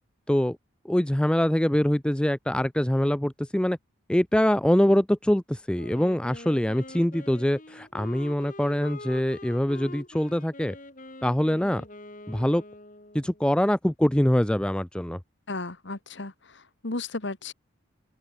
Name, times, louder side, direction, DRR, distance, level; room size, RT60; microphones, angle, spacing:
voice 1, 0.8-3.8 4.1-10.8 11.2-11.8 12.3-12.6 13.1-15.2, equal, 5° left, 0.4 m, -24 dB
Wind instrument woodwind instrument, 5.7-13.5, left 2 dB, 40° left, 3.4 m, -44 dB
voice 2, 15.5-17.5, left 3 dB, 60° left, 1.5 m, -34 dB
open air
head